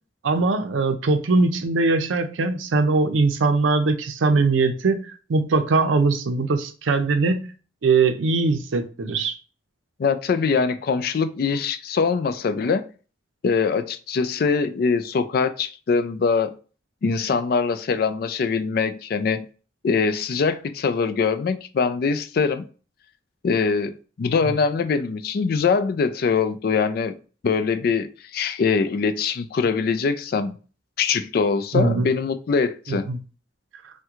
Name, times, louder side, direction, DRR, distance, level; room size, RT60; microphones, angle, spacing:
voice 1, 0.2-7.5 7.8-9.4 31.7-32.1 32.9-33.2, right 3 dB, 85° right, 0.5 m, -21 dB
voice 2, 10.0-12.8 13.4-16.6 17.0-19.4 19.8-22.7 23.4-27.2 27.4-30.5 31.0-33.1, left 5 dB, 50° left, 0.3 m, -23 dB
3.5 x 2.2 x 2.9 m
head